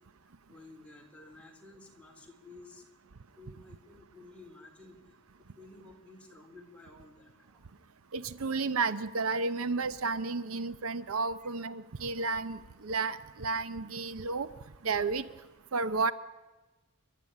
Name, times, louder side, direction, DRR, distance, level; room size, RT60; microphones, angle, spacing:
voice 1, 0.5-2.8 3.4-5.2 5.6-7.7 11.4-11.5, left 2 dB, 5° left, -1 dB, 3.9 m, -53 dB
voice 2, 8.1-14.5 14.8-15.3 15.7-16.1, right 4 dB, 70° right, 14 dB, 0.8 m, -32 dB
28.5 x 12.5 x 10.0 m, 1.2 s
head